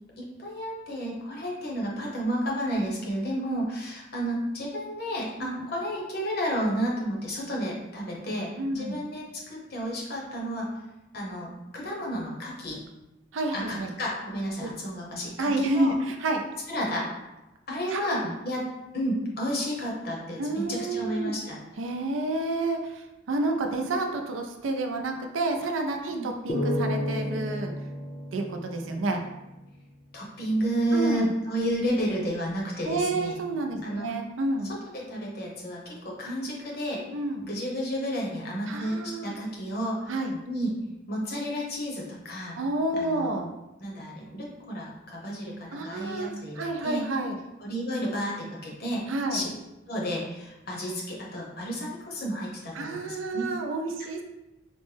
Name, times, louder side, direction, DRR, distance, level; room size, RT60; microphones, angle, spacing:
voice 1, 0.2-10.7 11.1-12.8 13.5-15.9 16.7-17.1 17.7-18.7 18.9-21.6 26.0-26.3 30.1-33.4 33.8-34.1 34.7-37.0 37.4-40.2 40.5-40.8 41.1-42.6 43.0-43.3 43.8-47.0 47.6-49.0 49.3-49.5 49.9-53.5, equal, 50° left, -2 dB, 0.9 m, -31 dB
voice 2, 8.6-9.0 13.3-13.9 14.6-14.7 15.4-16.4 17.9-18.3 20.4-21.3 21.8-27.7 28.3-29.2 30.9-31.3 32.8-34.8 37.1-37.4 38.7-39.3 40.1-40.4 42.6-43.5 45.7-46.3 46.6-47.4 49.1-49.5 52.7-54.2, right 2 dB, 85° right, 4 dB, 0.5 m, -29 dB
sound 1, 26.5-29.9, equal, 35° left, 0.5 m, -32 dB
4.2 x 2.1 x 3.2 m, 0.98 s
head